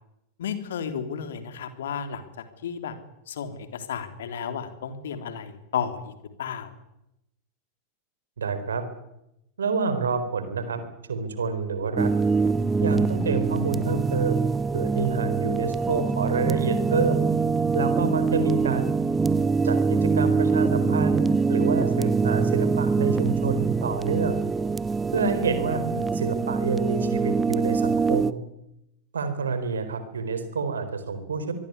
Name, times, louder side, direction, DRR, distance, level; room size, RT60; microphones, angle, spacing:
voice 1, 0.4-2.3 2.6-3.0 3.3-6.1 6.4-6.7 25.8-26.1, left 7 dB, 60° left, 9 dB, 3.5 m, -33 dB
voice 2, 8.4-8.8 9.6-10.8 11.1-12.1 12.8-17.2 17.7-18.9 19.6-24.4 25.1-25.8 26.1-28.4 29.1-31.5, right 5 dB, 70° right, 11 dB, 4.4 m, -28 dB
sound 1, 12.0-28.3, right 4 dB, 15° right, 1.2 m, -24 dB
25.0 x 21.0 x 9.7 m, 0.85 s
figure-of-eight pair, 90°, 0 cm